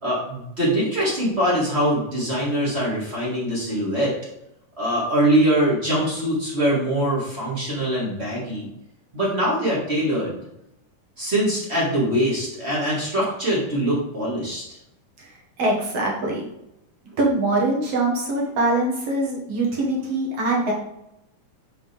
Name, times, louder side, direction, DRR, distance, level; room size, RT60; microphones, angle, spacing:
voice 1, 0.0-4.1 4.8-8.7 9.1-10.4 11.2-14.6, right 1 dB, 25° right, -5 dB, 2.1 m, -23 dB
voice 2, 15.2-16.4 17.2-20.7, right 2 dB, 55° right, -2 dB, 2.6 m, -23 dB
7.6 x 5.5 x 3.5 m, 0.83 s
omnidirectional pair, 3.6 m